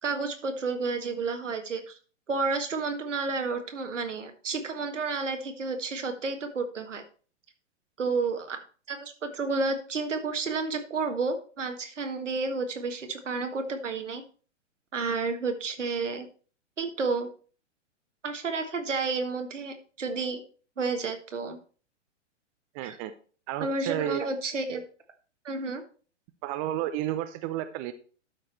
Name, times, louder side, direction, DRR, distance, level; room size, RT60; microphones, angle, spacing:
voice 1, 0.0-2.0 2.3-7.0 8.0-8.6 8.9-14.2 14.9-16.3 16.8-17.3 18.2-20.4 20.8-21.6 22.8-23.0 23.6-24.8 25.4-25.8, right 4 dB, 80° right, 6 dB, 1.7 m, -31 dB
voice 2, 22.7-23.1 23.5-24.2 26.4-27.9, right 12 dB, 30° right, 10 dB, 0.6 m, -31 dB
12.0 x 4.9 x 4.4 m, 0.39 s
figure-of-eight pair, 115°, 36 cm